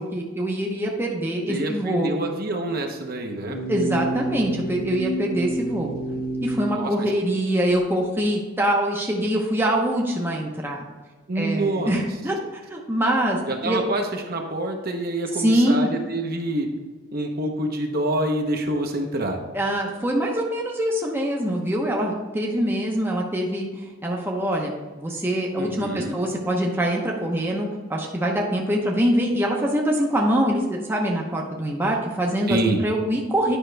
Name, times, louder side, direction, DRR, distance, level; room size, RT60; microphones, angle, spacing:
voice 1, 0.1-2.1 3.7-5.9 6.4-10.8 11.3-12.4 12.7-13.8 15.4-15.9 19.5-23.7 24.0-24.7 25.0-32.6 32.8-33.6, equal, 10° right, -1 dB, 0.8 m, -24 dB
voice 2, 1.5-3.6 6.7-7.1 11.3-11.9 13.5-16.7 17.1-19.4 25.6-26.2 32.5-32.9, right 1 dB, 45° right, 3 dB, 0.9 m, -26 dB
sound 1, 3.4-6.7, right 2 dB, 65° left, 0.7 m, -29 dB
9.9 x 5.7 x 3.3 m, 1.3 s
head